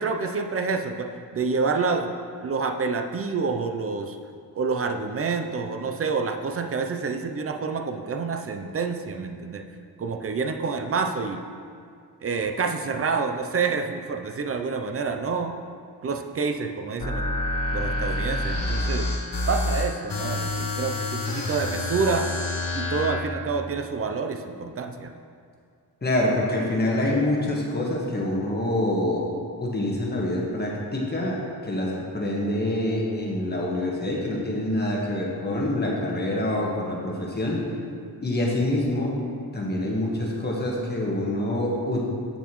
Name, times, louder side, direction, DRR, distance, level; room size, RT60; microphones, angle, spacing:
voice 1, 0.0-2.1 2.4-4.2 4.5-9.6 10.0-11.4 12.2-15.6 16.0-17.3 17.7-19.1 19.5-22.3 22.7-25.2, right 4 dB, 35° right, 5 dB, 0.5 m, -28 dB
sound 1, 17.0-23.2, left 2 dB, 55° left, 1.1 m, -27 dB
voice 2, 26.0-29.3 29.6-37.6 38.2-39.2 39.5-42.1, left 1 dB, 25° left, -3 dB, 1.3 m, -26 dB
8.2 x 6.8 x 3.0 m, 2.2 s
wide cardioid pair, 115°, 40 cm